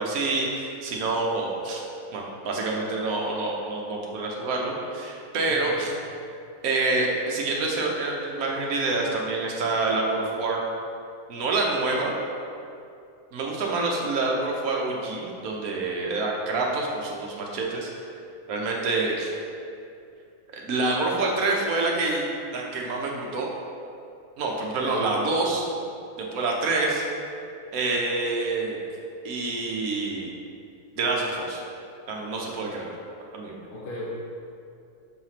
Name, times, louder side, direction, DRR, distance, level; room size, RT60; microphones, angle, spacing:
voice 1, 0.0-1.8 2.1-5.9 6.6-10.6 11.3-12.2 13.3-17.9 18.5-19.3 20.5-23.5 24.4-25.7 26.2-27.0 27.7-28.8 29.2-30.3 30.9-31.6 32.1-32.9 33.3-33.6, right 3 dB, 65° right, -1 dB, 1.3 m, -27 dB
voice 2, 33.7-34.1, left 2 dB, 60° left, -8 dB, 1.2 m, -36 dB
6.5 x 3.1 x 5.7 m, 2.5 s
omnidirectional pair, 1.7 m